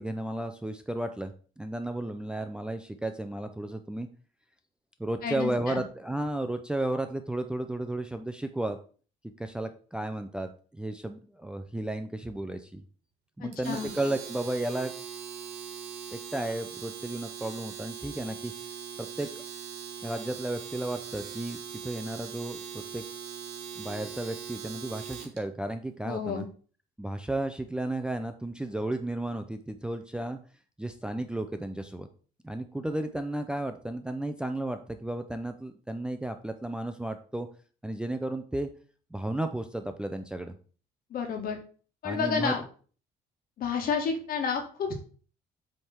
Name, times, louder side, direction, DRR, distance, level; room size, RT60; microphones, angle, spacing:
voice 1, 0.0-4.1 5.0-8.8 9.4-12.8 13.4-14.9 16.1-18.5 19.0-19.3 20.0-22.6 22.9-23.0 23.7-26.5 27.0-30.4 30.8-32.1 32.4-37.5 37.8-38.7 39.1-40.5 42.0-42.5, right 1 dB, 5° right, 7 dB, 0.5 m, -33 dB
voice 2, 5.2-5.8 13.4-13.9 26.0-26.4 41.1-41.6 42.0-42.6 43.6-44.9, left 6 dB, 60° left, 4 dB, 1.8 m, -30 dB
Domestic sounds home sounds, 13.5-25.4, right 8 dB, 90° right, 1.6 m, -41 dB
7.8 x 3.5 x 4.4 m, 0.41 s
cardioid pair, 110°, 17 cm